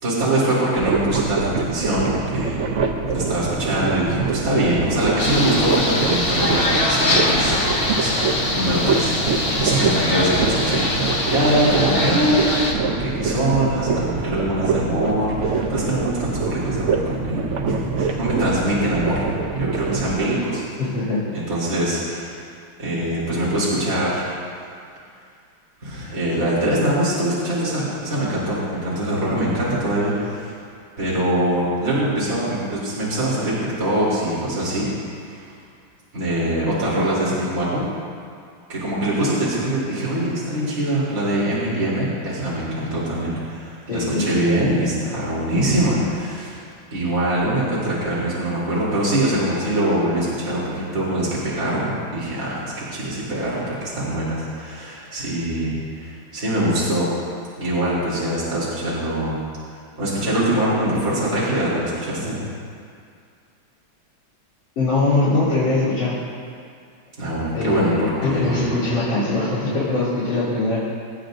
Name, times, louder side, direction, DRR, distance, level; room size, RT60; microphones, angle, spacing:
voice 1, 0.0-2.7 3.1-7.6 8.0-8.2 8.5-19.2 19.6-20.8 21.3-22.4 22.8-24.2 25.8-30.5 31.0-34.9 35.2-35.5 36.1-37.8 38.7-46.6 46.9-57.1 57.6-59.4 60.0-62.4 67.2-68.7, right 1 dB, 40° right, -9 dB, 3.7 m, -23 dB
sound 1, 0.8-20.2, right 4 dB, 75° right, 0.6 m, -25 dB
sound 2, 5.2-12.7, left 2 dB, 35° left, 1.2 m, -23 dB
voice 2, 20.8-21.2 43.9-44.4 64.8-66.2 67.5-70.9, left 2 dB, 70° left, -13 dB, 4.2 m, -22 dB
25.0 x 9.1 x 2.6 m, 2.3 s
omnidirectional pair, 2.2 m